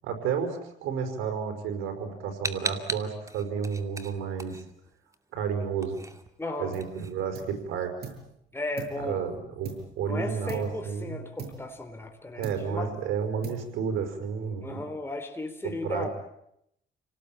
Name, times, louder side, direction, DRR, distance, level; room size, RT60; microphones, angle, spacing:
voice 1, 0.0-4.6 5.3-6.0 6.6-7.9 9.0-11.2 12.4-14.8 15.6-16.1, right 6 dB, 90° right, 6 dB, 5.4 m, -31 dB
sound 1, 2.4-5.2 5.5-7.8, right 2 dB, 15° right, 2.5 m, -37 dB
voice 2, 6.4-6.8 8.5-9.2 10.0-12.9 14.6-16.1, left 2 dB, 10° left, 4 dB, 4.0 m, -35 dB
sound 2, 6.7-7.0 7.3-8.3 8.8-10.1 10.5-10.9 11.4-12.1 12.4-12.9 13.4-14.0, right 5 dB, 55° right, 7.6 m, -42 dB
29.5 x 19.0 x 9.1 m, 0.78 s
cardioid pair, 90°, 20 cm